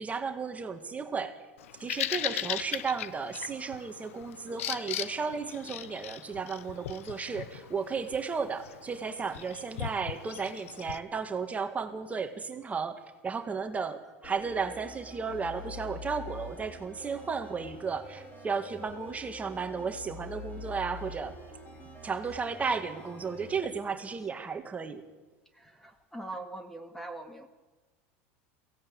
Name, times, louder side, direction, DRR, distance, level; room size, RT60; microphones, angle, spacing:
voice 1, 0.0-1.4 1.8-21.4 22.0-25.0, right 5 dB, 20° right, 6 dB, 1.9 m, -34 dB
Bird vocalization bird call bird song, 1.6-11.0, left 12 dB, 90° left, 0.7 m, -39 dB
sound 1, 14.2-23.5, left 2 dB, 30° left, 7.3 m, -46 dB
voice 2, 25.6-27.5, right 2 dB, 5° left, 7 dB, 1.8 m, -42 dB
22.5 x 17.0 x 8.8 m, 1.3 s
supercardioid pair, 120°, 7 cm